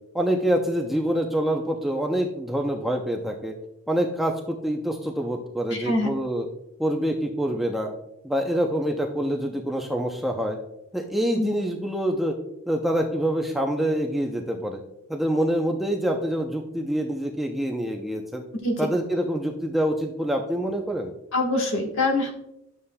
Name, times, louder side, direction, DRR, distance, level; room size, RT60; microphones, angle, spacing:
voice 1, 0.1-3.5 3.9-6.5 6.8-7.9 8.2-10.6 10.9-12.3 12.7-14.8 15.1-18.4 18.8-21.1, equal, ahead, 1 dB, 0.5 m, -26 dB
voice 2, 5.7-6.1 11.3-11.5 18.6-18.9 21.3-22.3, left 2 dB, 55° left, 2 dB, 1.3 m, -24 dB
11.0 x 7.0 x 2.2 m, 0.84 s
head